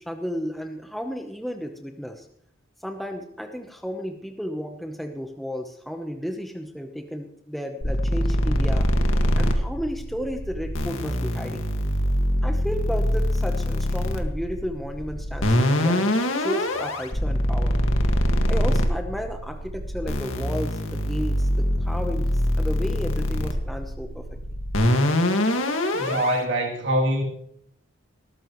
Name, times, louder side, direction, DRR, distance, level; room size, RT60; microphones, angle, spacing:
voice 1, 0.0-2.3 2.8-8.9 9.3-11.7 12.4-17.8 18.5-24.2, equal, ahead, 0.9 m, -33 dB
sound 1, 7.8-26.4, equal, 80° left, 1.9 m, -24 dB
voice 2, 25.9-27.2, right 1 dB, 65° right, 3.0 m, -24 dB
19.5 x 14.5 x 3.1 m
head